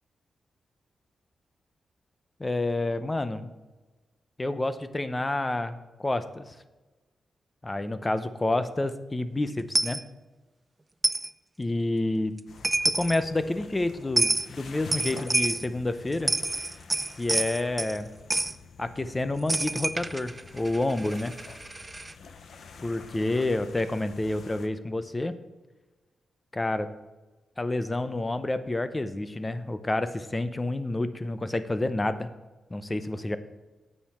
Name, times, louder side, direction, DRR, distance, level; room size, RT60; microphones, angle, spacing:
voice 1, 2.4-3.5 4.4-6.5 7.6-10.0 11.6-12.3 12.8-16.3 17.2-18.1 18.8-21.3 22.8-25.3 26.5-26.9 27.6-32.3 32.7-33.4, left 2 dB, 20° left, 12 dB, 0.7 m, -29 dB
Coin (dropping), 9.7-10.0 11.0-11.3 12.4-12.5 12.6-13.2 14.2-14.5 14.9-15.7 16.1-18.0 18.3-18.5 19.5-22.1, right 2 dB, 20° right, 0.4 m, -28 dB
sound 1, 12.5-24.7, left 5 dB, 65° left, 0.9 m, -47 dB
8.9 x 6.6 x 5.6 m, 1.2 s
wide cardioid pair, 110°, 0 cm